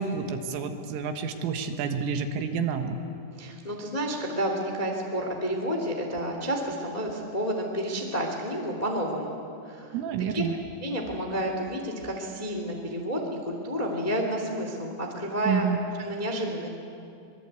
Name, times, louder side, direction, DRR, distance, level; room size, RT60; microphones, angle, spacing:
voice 1, 0.0-3.0 9.9-10.6 15.5-15.8, right 6 dB, 75° right, 6 dB, 3.9 m, -29 dB
voice 2, 3.4-9.4 9.6-10.0 10.3-10.4 10.8-15.7 16.0-16.7, equal, 25° left, 2 dB, 0.9 m, -30 dB
24.5 x 22.5 x 8.3 m, 2.7 s
omnidirectional pair, 6.0 m